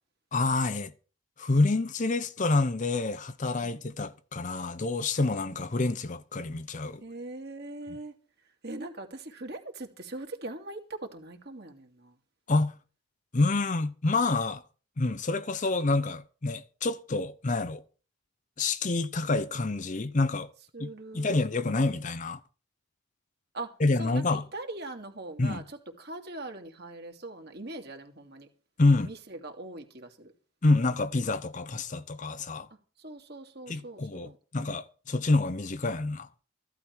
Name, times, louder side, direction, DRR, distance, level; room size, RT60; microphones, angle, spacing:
voice 1, 0.3-0.9 1.4-7.0 12.5-12.7 13.3-14.6 15.0-17.8 18.6-20.5 20.8-22.4 23.8-24.4 25.4-25.6 28.8-29.1 30.6-32.7 33.7-36.3, left 3 dB, 35° left, 0.6 m, -27 dB
voice 2, 5.2-5.6 7.0-8.1 8.6-12.1 20.7-21.4 21.7-22.0 23.5-28.5 29.0-30.3 33.0-34.4, right 2 dB, 50° right, 2.5 m, -41 dB
15.0 x 12.0 x 4.6 m
head